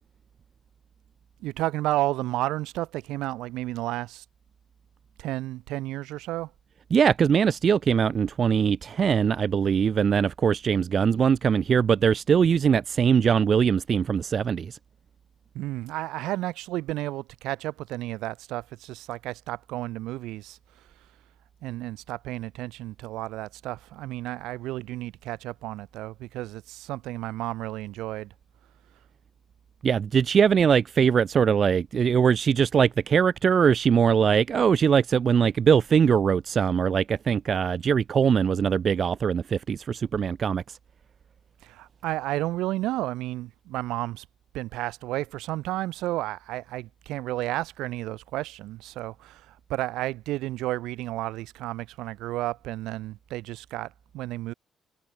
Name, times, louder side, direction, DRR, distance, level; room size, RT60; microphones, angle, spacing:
voice 1, 1.4-4.2 5.2-6.5 15.5-20.6 21.6-28.3 41.6-44.2 44.5-49.4 49.7-54.5, right 17 dB, 75° right, 0.7 m, -32 dB
voice 2, 6.9-14.8 29.8-40.8, right 7 dB, 50° right, 0.3 m, -22 dB
hypercardioid pair, 45°, 0 cm